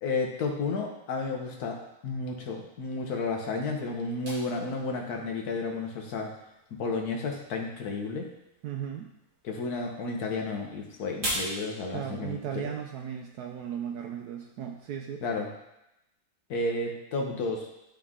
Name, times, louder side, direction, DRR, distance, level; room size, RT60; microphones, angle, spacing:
voice 1, 0.0-6.3 6.8-8.3 9.4-12.7 15.2-15.5 16.5-17.7, left 3 dB, 55° left, 1 dB, 1.3 m, -32 dB
sound 1, 4.2-15.0, right 1 dB, 60° right, 3.0 m, -43 dB
voice 2, 8.6-9.1 11.9-15.2, right 9 dB, 85° right, 2 dB, 0.8 m, -36 dB
10.5 x 3.7 x 3.6 m, 0.89 s
omnidirectional pair, 2.2 m